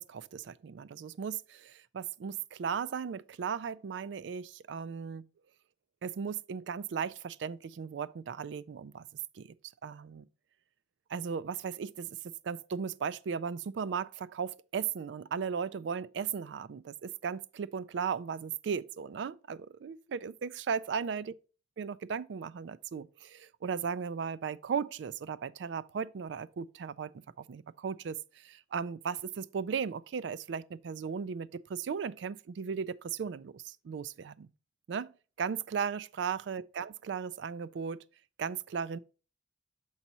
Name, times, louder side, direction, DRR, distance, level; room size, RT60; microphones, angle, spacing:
voice 1, 0.0-5.3 6.0-9.1 9.3-9.5 9.8-10.2 11.1-21.3 21.8-27.1 27.4-34.5 34.9-35.1 35.4-38.0 38.4-39.0, right 6 dB, 80° right, 0.4 m, -36 dB
7.2 x 4.0 x 4.2 m
head